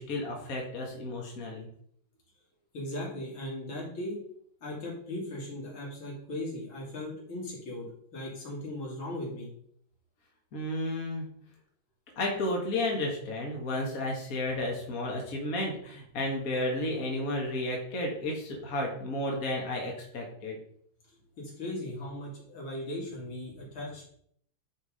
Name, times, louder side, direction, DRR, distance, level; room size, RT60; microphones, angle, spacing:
voice 1, 0.0-1.7 10.5-11.3 12.2-20.6, left 1 dB, 45° left, -1 dB, 1.9 m, -32 dB
voice 2, 2.7-4.2 4.6-7.9 8.1-9.5 21.4-24.0, left 1 dB, 80° left, -4 dB, 3.4 m, -38 dB
9.7 x 3.9 x 4.9 m, 0.67 s
omnidirectional pair, 2.2 m